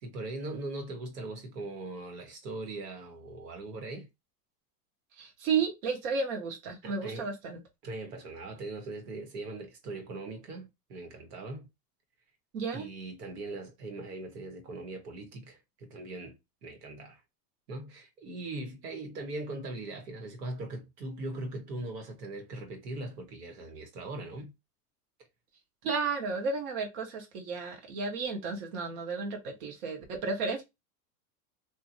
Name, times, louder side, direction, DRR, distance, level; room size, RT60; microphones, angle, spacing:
voice 1, 0.0-4.1 6.8-7.3 7.8-11.7 12.7-17.2 17.7-24.5, right 2 dB, 90° right, 1.4 m, -40 dB
voice 2, 5.2-7.6 12.5-12.9 25.8-30.6, right 5 dB, 50° right, 1.0 m, -33 dB
3.0 x 2.5 x 2.6 m
supercardioid pair, 165°, 46 cm